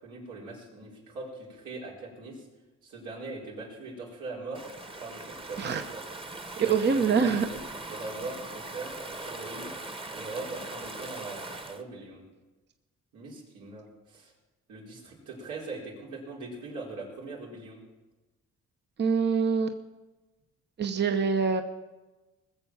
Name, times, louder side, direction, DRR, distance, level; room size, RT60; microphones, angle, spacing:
voice 1, 0.0-2.4 2.8-4.6 5.0-6.0 6.6-7.6 7.9-9.7 10.1-12.3 13.1-14.3 14.7-17.8, right 3 dB, 85° right, -3 dB, 4.4 m, -41 dB
Stream / Ocean, 4.5-11.8, right 2 dB, 20° right, 1.2 m, -40 dB
voice 2, 6.6-7.5 19.0-19.7 20.8-21.6, right 5 dB, 35° right, 6 dB, 0.8 m, -25 dB
20.0 x 7.0 x 7.1 m, 1.1 s
cardioid pair, 90°, 30 cm